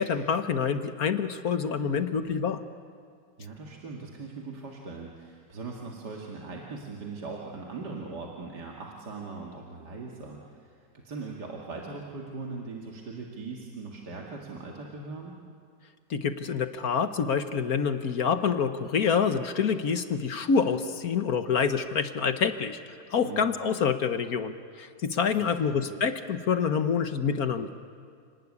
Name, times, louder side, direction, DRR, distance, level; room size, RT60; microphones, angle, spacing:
voice 1, 0.0-2.6 16.1-22.8 23.1-27.7, left 6 dB, 55° left, 9 dB, 1.4 m, -27 dB
voice 2, 3.4-15.3 23.2-23.5 25.3-25.8, right 4 dB, 60° right, -2 dB, 2.6 m, -40 dB
29.5 x 19.0 x 9.7 m, 2.3 s
omnidirectional pair, 2.1 m